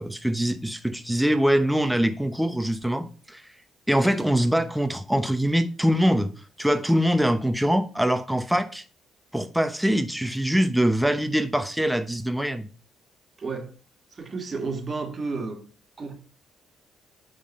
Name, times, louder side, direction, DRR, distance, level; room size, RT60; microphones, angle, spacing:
voice 1, 0.0-3.4 3.9-6.3 6.6-8.8 9.3-12.7, equal, 5° right, 0.8 m, -23 dB
voice 2, 13.4-13.8 14.1-15.7 16.0-16.2, right 4 dB, 40° right, 1.6 m, -32 dB
8.3 x 3.8 x 4.2 m
supercardioid pair, 65°, 0 cm